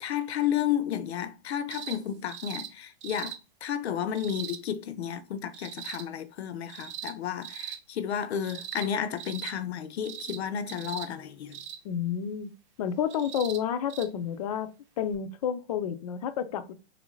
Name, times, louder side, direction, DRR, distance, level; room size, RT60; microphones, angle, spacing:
voice 1, 0.0-11.6, left 9 dB, 85° left, 0.6 m, -32 dB
sound 1, 1.7-2.0 2.3-2.7 3.0-3.4 4.1-4.6 5.5-6.0 6.7-7.1 7.4-7.8 8.4-8.9 9.2-9.5 10.0-10.4 10.7-11.1 11.5-11.8 13.1-13.6 13.9-14.1 15.1-15.2, right 10 dB, 30° right, 0.4 m, -40 dB
voice 2, 11.8-12.5 12.8-14.7 15.0-16.7, left 8 dB, 40° left, 0.4 m, -30 dB
3.1 x 2.6 x 3.0 m
hypercardioid pair, 150°, 32 cm